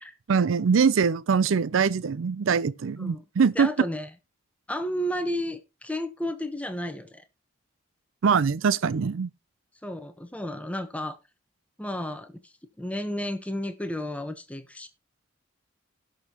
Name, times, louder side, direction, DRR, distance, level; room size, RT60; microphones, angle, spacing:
voice 1, 0.3-3.7 8.2-9.3, right 6 dB, 70° right, 0.4 m, -23 dB
voice 2, 3.5-4.1 4.7-7.2 9.8-11.2 11.8-14.9, equal, 5° left, 1.0 m, -32 dB
17.5 x 6.5 x 2.9 m
head